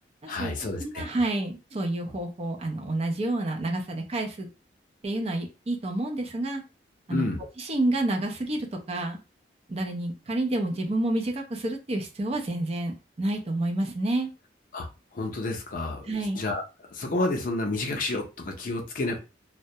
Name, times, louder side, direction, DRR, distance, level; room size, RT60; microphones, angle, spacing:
voice 1, 0.3-1.1 7.1-7.4 14.7-14.9 15.1-16.6 16.9-19.2, left 2 dB, 50° left, 3 dB, 0.5 m, -30 dB
voice 2, 0.8-4.5 5.0-6.6 7.1-7.3 7.6-9.2 9.7-14.3 16.0-16.4, right 2 dB, 35° right, 2 dB, 0.5 m, -29 dB
2.2 x 2.1 x 2.7 m, 0.29 s
head